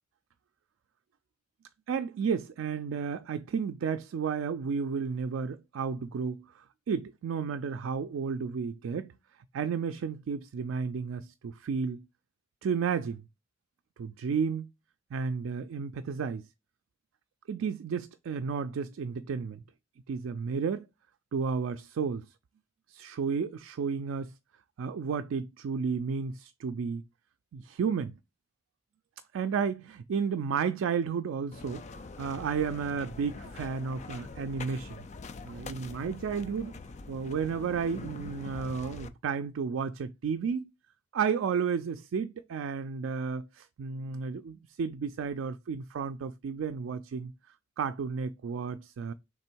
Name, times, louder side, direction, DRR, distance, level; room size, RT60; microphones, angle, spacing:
voice 1, 1.9-9.1 9.5-12.0 12.6-13.2 14.0-14.7 15.1-16.5 17.5-19.6 20.1-20.9 21.3-22.3 22.9-24.3 24.8-27.0 27.5-28.1 29.3-31.8 32.2-35.0 35.4-36.8 37.1-40.7 41.1-47.3 47.8-49.1, right 6 dB, 90° right, 0.3 m, -32 dB
sound 1, 31.5-39.1, left 3 dB, 35° left, 0.4 m, -44 dB
3.5 x 3.4 x 4.4 m
head